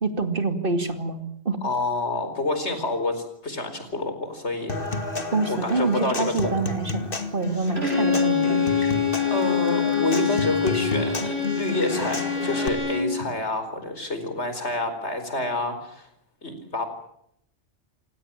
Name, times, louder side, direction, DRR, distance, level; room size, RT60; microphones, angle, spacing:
voice 1, 0.0-1.6 5.3-8.9, right 3 dB, 50° right, 8 dB, 2.8 m, -27 dB
voice 2, 1.6-4.7 5.5-6.5 9.3-16.1 16.4-16.9, left 2 dB, 85° left, 8 dB, 4.9 m, -28 dB
Human voice / Acoustic guitar / Percussion, 4.7-12.7, left 3 dB, 55° left, 2.3 m, -31 dB
Bowed string instrument, 7.8-13.2, left 6 dB, 70° right, 6.9 m, -25 dB
28.5 x 17.0 x 9.0 m, 0.73 s
omnidirectional pair, 1.1 m